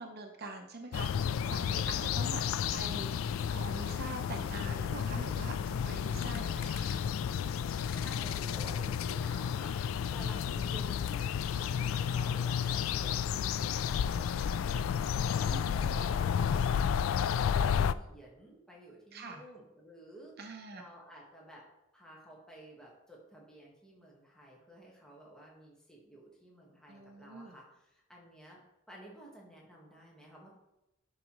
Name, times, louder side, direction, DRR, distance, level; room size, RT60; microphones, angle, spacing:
voice 1, 0.0-2.4 2.7-3.1 3.5-7.0 15.5-15.9 19.1-19.4 20.4-20.8 26.9-27.5, right 3 dB, 50° right, 3 dB, 0.8 m, -44 dB
sound 1, 0.9-17.9, left 7 dB, 80° left, 0.3 m, -32 dB
voice 2, 7.7-15.0 15.3-20.4 20.7-21.6 21.9-28.6 28.9-30.5, right 1 dB, 5° left, -4 dB, 1.5 m, -53 dB
11.0 x 6.1 x 3.1 m, 0.91 s
head